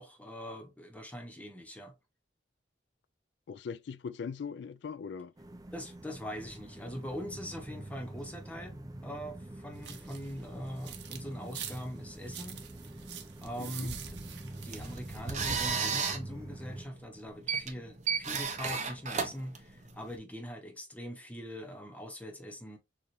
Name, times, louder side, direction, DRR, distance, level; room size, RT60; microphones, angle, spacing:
voice 1, 0.0-1.9 5.7-12.6 13.4-14.2 14.6-22.8, equal, 10° left, 1.0 m, -42 dB
voice 2, 3.5-5.3 13.6-13.9, left 6 dB, 65° left, 0.3 m, -40 dB
sound 1, 5.4-16.8, right 1 dB, 20° right, 0.6 m, -46 dB
sound 2, 9.8-11.2 11.5-15.7, right 6 dB, 70° right, 1.0 m, -45 dB
sound 3, 14.5-20.2, right 6 dB, 40° right, 0.9 m, -34 dB
6.8 x 2.5 x 3.1 m
head